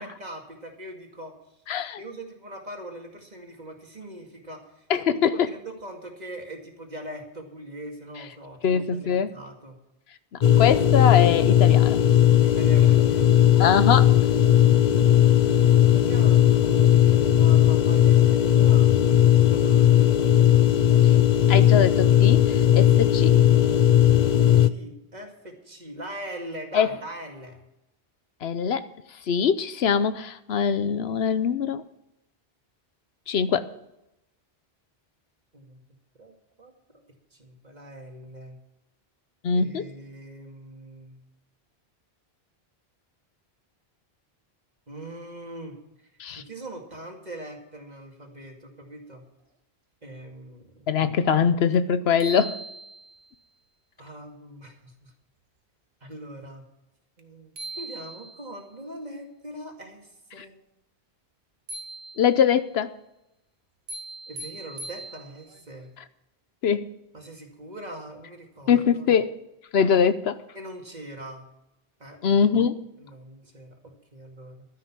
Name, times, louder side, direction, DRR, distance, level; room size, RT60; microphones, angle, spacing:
voice 1, 0.0-1.3 2.0-9.8 10.5-11.0 12.4-13.9 15.5-20.1 24.6-27.6 35.5-35.8 36.2-37.0 37.3-38.6 39.5-41.2 44.9-46.1 46.3-49.2 50.0-51.0 54.0-55.1 56.0-56.6 57.2-60.6 64.3-65.9 67.1-69.1 70.5-71.5 72.0-72.4 73.0-74.7, right 1 dB, 45° right, 2 dB, 2.2 m, -42 dB
voice 2, 1.7-2.0 4.9-5.5 8.6-9.3 10.6-12.0 13.6-14.1 21.0-21.1 21.5-23.4 26.7-26.9 28.4-28.9 29.3-31.8 33.3-33.7 39.4-39.9 46.2-46.4 50.9-52.6 60.4-60.5 62.2-62.9 66.6-66.9 68.7-69.3 69.7-70.4 72.2-72.9, left 7 dB, 80° left, 13 dB, 1.0 m, -22 dB
sound 1, 10.4-24.7, left 11 dB, 50° left, 0.6 m, -17 dB
sound 2, 51.7-51.8 52.2-53.3 57.2-57.3 57.6-58.6 61.7-62.6 63.9-65.6, right 3 dB, 75° right, 1.4 m, -40 dB
12.5 x 10.0 x 6.0 m, 0.88 s
omnidirectional pair, 1.0 m